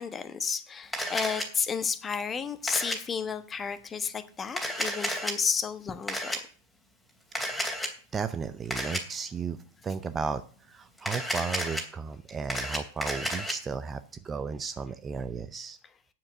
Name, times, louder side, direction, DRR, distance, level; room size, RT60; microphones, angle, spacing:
voice 1, 0.0-6.4 11.0-11.2, left 6 dB, 20° left, 1.1 m, -32 dB
Camera, 0.9-1.5 2.7-3.0 4.5-5.3 6.1-6.4 7.3-7.9 8.7-9.0 11.0-11.8 12.3-13.5, equal, ahead, 2.9 m, -31 dB
voice 2, 7.4-7.7 8.1-9.6 9.8-10.4 10.7-15.8, right 5 dB, 20° right, 0.6 m, -34 dB
8.8 x 7.5 x 7.6 m
figure-of-eight pair, 90°, 0 cm